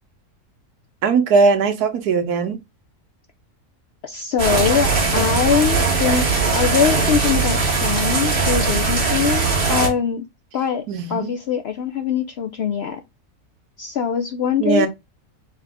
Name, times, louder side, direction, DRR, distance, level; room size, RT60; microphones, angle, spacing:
voice 1, 1.0-2.6 10.9-11.3 14.6-14.9, right 5 dB, 85° right, 1.4 m, -19 dB
voice 2, 4.0-10.3 10.5-13.0 13.8-14.9, left 7 dB, 70° left, 0.6 m, -22 dB
sound 1, 4.4-9.9, right 4 dB, 40° right, 1.5 m, -20 dB
3.9 x 3.9 x 3.4 m
omnidirectional pair, 1.6 m